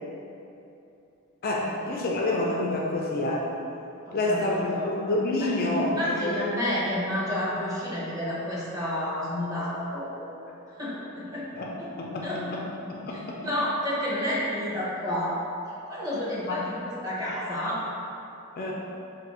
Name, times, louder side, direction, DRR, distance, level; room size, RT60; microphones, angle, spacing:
voice 1, 1.4-3.5 4.1-6.4 11.5-12.6 12.9-13.5 16.5-16.6 18.6-18.7, left 2 dB, 45° left, -2 dB, 0.3 m, -28 dB
voice 2, 4.1-4.9 5.4-10.3 10.8-11.5 11.8-11.9 12.2-12.4 13.1-15.4 15.9-17.8, left 1 dB, 15° right, -8 dB, 0.8 m, -30 dB
2.6 x 2.5 x 4.1 m, 2.8 s
head